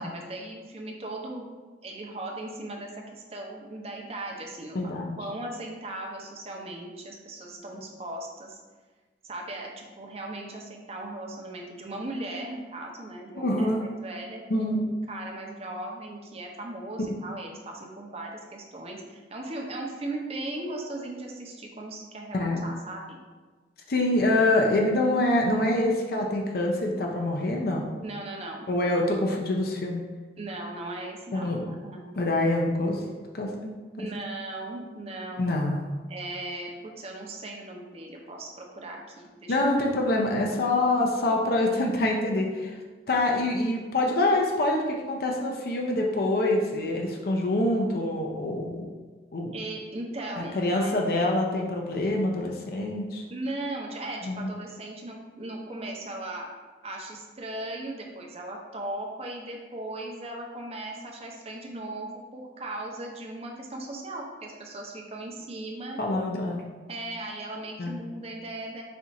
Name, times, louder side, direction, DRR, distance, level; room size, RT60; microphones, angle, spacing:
voice 1, 0.0-1.5 1.8-8.6 9.2-23.2 28.0-29.1 30.4-32.0 34.0-35.5 36.1-39.6 49.5-50.9 53.3-56.5 56.8-66.0 66.9-68.8, right 2 dB, 35° right, 0 dB, 0.6 m, -38 dB
voice 2, 4.7-5.1 13.4-13.8 14.5-14.8 17.0-17.1 22.3-22.6 23.9-27.8 28.7-30.0 31.3-31.6 32.1-33.0 33.3-34.1 35.4-36.0 39.5-42.8 43.1-48.9 49.3-49.6 50.4-53.2 54.2-54.5 66.0-66.7 67.8-67.9, left 1 dB, 55° left, 0 dB, 0.5 m, -25 dB
4.2 x 2.4 x 4.0 m, 1.3 s
head